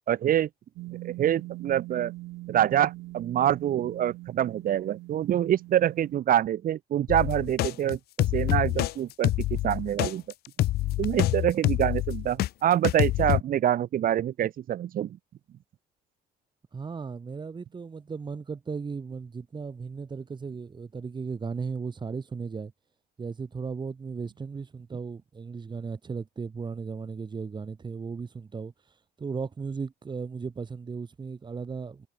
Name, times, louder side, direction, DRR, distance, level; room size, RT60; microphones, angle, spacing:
voice 1, 0.1-0.5 1.0-2.1 2.5-10.2 11.0-15.2, right 11 dB, 55° right, 1.9 m, -26 dB
sound 1, 0.8-6.2, right 19 dB, 90° right, 7.6 m, -42 dB
sound 2, 7.1-12.5 12.8-13.4, left 16 dB, 70° left, 0.7 m, -26 dB
voice 2, 16.7-22.7 23.2-28.7 29.2-32.1, right 5 dB, 25° right, 2.3 m, -36 dB
cardioid pair, 110°, 17 cm